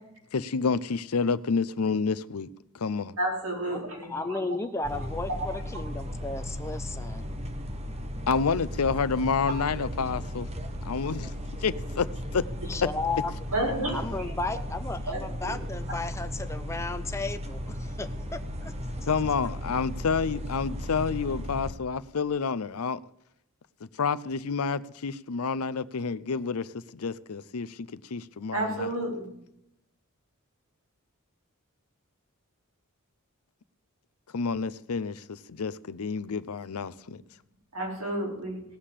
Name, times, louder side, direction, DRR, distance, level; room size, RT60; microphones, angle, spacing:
voice 1, 0.3-2.5 2.7-3.1 8.3-10.5 10.8-11.3 11.6-12.1 12.3-12.4 19.1-23.0 24.0-28.9 34.3-37.2, left 5 dB, 80° left, 0.6 m, -29 dB
voice 2, 3.2-4.5 4.9-5.0 5.5-5.6 13.5-14.3 15.1-15.6 28.5-29.3 37.7-38.6, right 1 dB, 70° right, 5.0 m, -31 dB
voice 3, 4.1-7.2 12.7-13.3 13.9-19.1, left 3 dB, 15° left, 0.7 m, -34 dB
sound 1, 4.8-21.7, equal, 30° right, 1.3 m, -36 dB
17.5 x 6.6 x 7.5 m
head